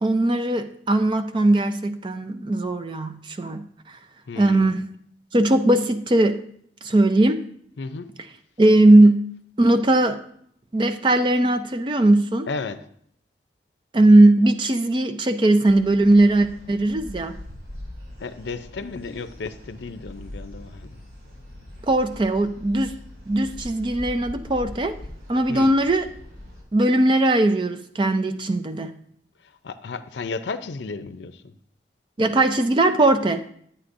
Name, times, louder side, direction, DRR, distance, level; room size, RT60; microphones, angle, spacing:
voice 1, 0.0-4.0 4.4-4.9 5.3-6.4 6.8-7.5 8.6-9.2 9.6-10.2 10.7-12.5 13.9-17.4 21.9-22.9 23.3-25.0 25.3-26.1 26.7-29.0 32.2-33.4, right 1 dB, 25° right, 9 dB, 0.4 m, -19 dB
voice 2, 4.3-4.7 7.8-8.1 12.5-12.8 18.2-21.0 25.5-25.8 29.6-31.5, left 4 dB, 80° left, 10 dB, 0.5 m, -33 dB
sound 1, 15.7-26.6, left 1 dB, 75° right, 4.1 m, -41 dB
11.0 x 8.7 x 2.6 m, 0.65 s
head